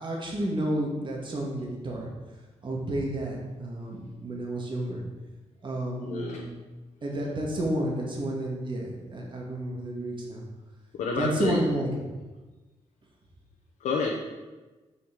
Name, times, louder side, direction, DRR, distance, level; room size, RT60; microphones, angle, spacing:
voice 1, 0.0-2.1 2.6-5.0 5.6-6.5 7.0-10.4 11.2-11.9, right 1 dB, 40° right, -2 dB, 2.3 m, -31 dB
voice 2, 6.0-6.4 10.9-11.6 13.8-14.2, left 4 dB, 90° left, -1 dB, 1.0 m, -29 dB
6.7 x 6.1 x 6.3 m, 1.2 s
cardioid pair, 85°, 12 cm